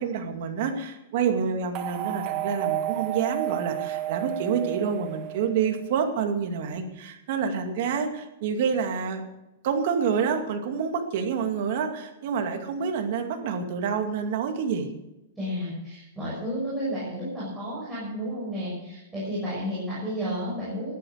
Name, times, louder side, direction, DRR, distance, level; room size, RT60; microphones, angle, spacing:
voice 1, 0.0-9.2 9.6-14.9, right 6 dB, 45° right, 4 dB, 2.4 m, -28 dB
sound 1, 1.7-6.0, right 14 dB, 30° right, 1.1 m, -31 dB
voice 2, 15.4-21.0, equal, 5° right, -10 dB, 6.7 m, -32 dB
14.0 x 12.0 x 6.6 m, 0.94 s
supercardioid pair, 170°, 0 cm